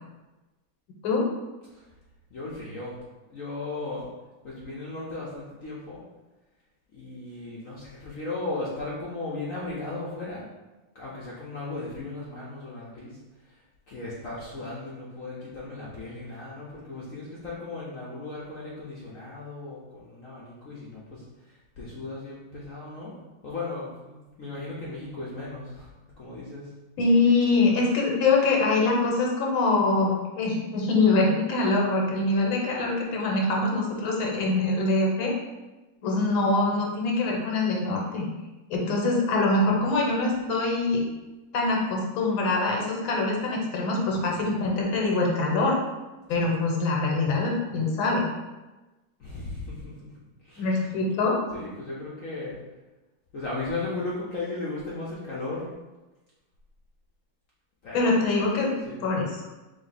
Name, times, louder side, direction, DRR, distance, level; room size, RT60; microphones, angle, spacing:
voice 1, 2.3-3.0 3.3-4.1 4.4-6.0 6.9-10.5 10.9-13.2 13.4-13.6 13.9-23.2 23.4-26.7 44.0-44.3 46.3-46.5 49.2-50.2 50.4-50.9 51.5-52.6 53.3-55.7 57.8-58.5 58.9-59.0, left 2 dB, 60° left, -6 dB, 0.8 m, -36 dB
voice 2, 27.0-35.3 36.0-38.2 38.7-41.0 41.5-45.8 46.3-48.2 50.6-51.4 57.9-58.7 59.0-59.3, left 3 dB, 85° left, -1 dB, 1.6 m, -24 dB
3.6 x 3.1 x 4.0 m, 1.1 s
omnidirectional pair, 2.2 m